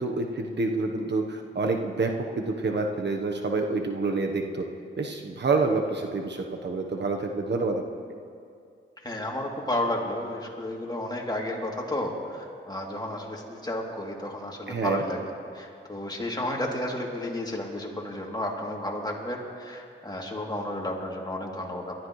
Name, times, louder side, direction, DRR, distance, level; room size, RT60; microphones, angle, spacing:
voice 1, 0.0-4.7 5.0-7.8 14.7-15.0, right 3 dB, 55° right, 3 dB, 1.1 m, -27 dB
voice 2, 9.0-15.2 15.5-21.9, left 1 dB, 20° left, -2 dB, 3.0 m, -32 dB
22.0 x 13.5 x 3.2 m, 2.4 s
cardioid pair, 50°, 21 cm